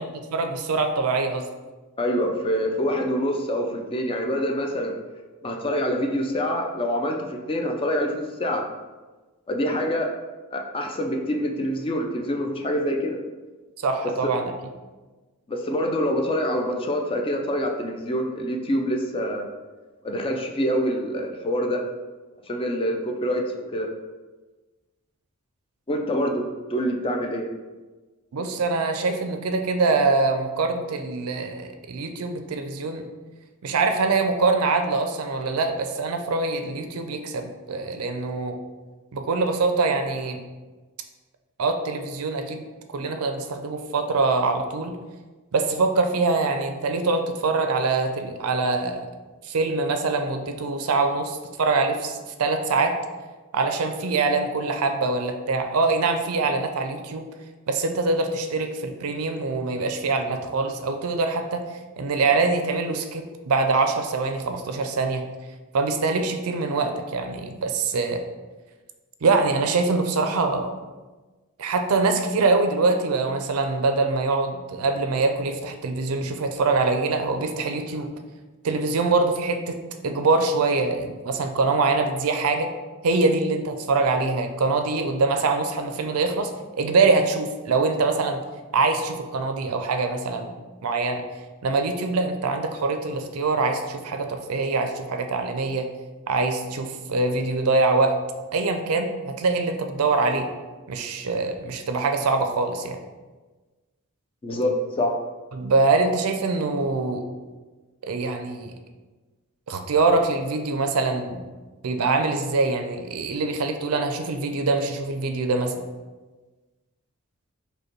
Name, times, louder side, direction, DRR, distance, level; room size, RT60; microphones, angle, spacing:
voice 1, 0.0-1.5 13.8-14.5 28.3-33.1 33.6-38.6 39.1-40.4 41.6-42.6 42.9-45.0 45.5-49.1 49.4-53.0 53.5-57.3 57.7-61.6 62.0-65.3 65.7-68.2 69.2-70.7 71.6-78.1 78.6-82.7 83.0-88.4 88.7-90.5 90.8-91.2 91.6-95.9 96.3-98.2 98.5-100.5 100.9-103.0 105.5-107.2 108.0-108.7 109.7-111.5 111.8-115.7, right 3 dB, 70° right, 6 dB, 0.5 m, -24 dB
voice 2, 2.0-4.9 5.4-8.6 9.5-10.1 10.5-13.2 15.5-19.5 20.0-21.8 22.5-23.4 23.7-23.9 25.9-26.4 26.7-27.5 104.4-105.1, equal, 25° left, 2 dB, 0.4 m, -25 dB
5.2 x 2.2 x 4.5 m, 1.3 s
head